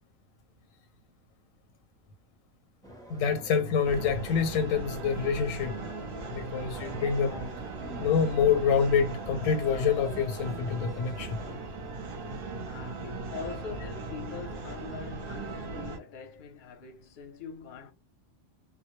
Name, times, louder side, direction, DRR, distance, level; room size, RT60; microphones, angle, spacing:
sound 1, 2.8-11.6, right 1 dB, 5° left, 0.4 m, -46 dB
voice 1, 3.1-5.8 6.3-7.5 8.0-11.4, left 6 dB, 90° left, 1.0 m, -27 dB
sound 2, 3.8-16.0, right 3 dB, 55° right, 0.7 m, -38 dB
voice 2, 12.6-17.9, left 6 dB, 50° left, 0.7 m, -43 dB
2.1 x 2.1 x 3.0 m
omnidirectional pair, 1.4 m